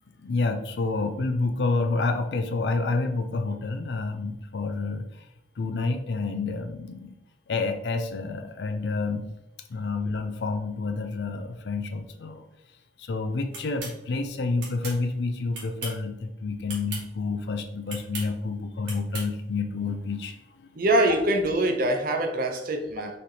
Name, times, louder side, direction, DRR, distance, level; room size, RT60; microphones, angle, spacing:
voice 1, 0.2-5.1 5.6-7.2 7.5-9.3 9.7-12.4 13.0-20.7, left 3 dB, 70° left, 7 dB, 0.5 m, -29 dB
sound 1, 13.5-14.0 14.6-15.0 15.5-16.0 16.7-17.0 17.9-18.3 18.9-19.3, right 3 dB, 80° right, 1.3 m, -37 dB
voice 2, 20.7-23.2, right 1 dB, 55° right, 5 dB, 0.6 m, -24 dB
4.2 x 3.2 x 2.8 m, 0.86 s
head